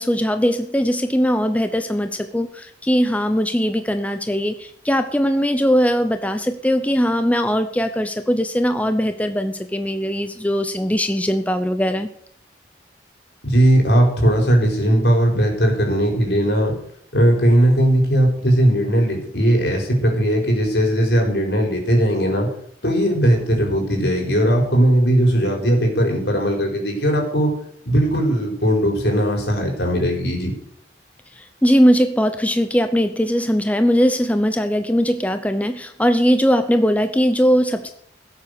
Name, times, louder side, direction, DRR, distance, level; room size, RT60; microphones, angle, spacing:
voice 1, 0.0-12.1 31.3-37.9, equal, 10° left, 8 dB, 0.8 m, -20 dB
voice 2, 13.4-16.7 17.1-22.5 22.8-27.5 27.8-30.5, right 1 dB, 70° left, 1 dB, 4.9 m, -18 dB
16.5 x 8.3 x 6.7 m, 0.68 s
head